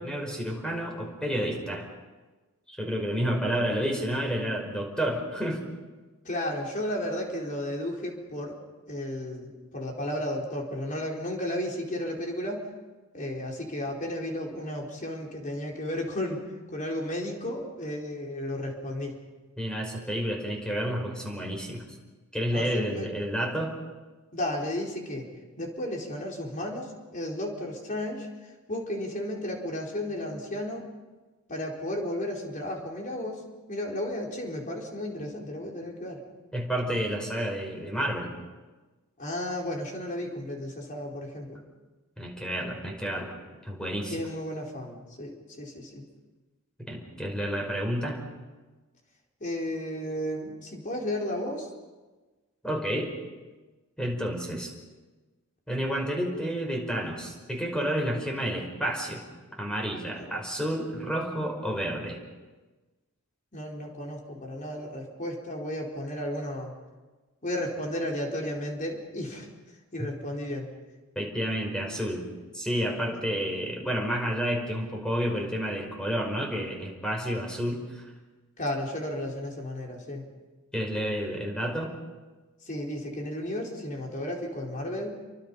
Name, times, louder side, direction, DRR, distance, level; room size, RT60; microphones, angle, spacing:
voice 1, 0.0-1.8 2.7-5.6 19.6-21.8 22.3-23.7 36.5-38.3 42.2-43.3 43.6-44.2 46.9-48.2 52.6-53.1 54.0-54.7 55.7-59.2 59.6-62.2 70.0-70.1 71.2-72.2 72.5-78.0 80.7-81.9, equal, 5° left, 1 dB, 5.2 m, -30 dB
voice 2, 6.2-8.6 8.9-12.7 13.1-16.4 16.7-19.2 22.5-23.1 24.3-25.3 25.6-30.9 31.5-36.2 39.2-41.6 44.1-46.0 49.4-51.7 60.1-60.3 63.5-66.7 67.4-69.5 69.9-70.7 78.6-80.2 82.6-85.2, left 1 dB, 35° left, 0 dB, 4.4 m, -33 dB
29.5 x 24.0 x 5.6 m, 1.2 s
head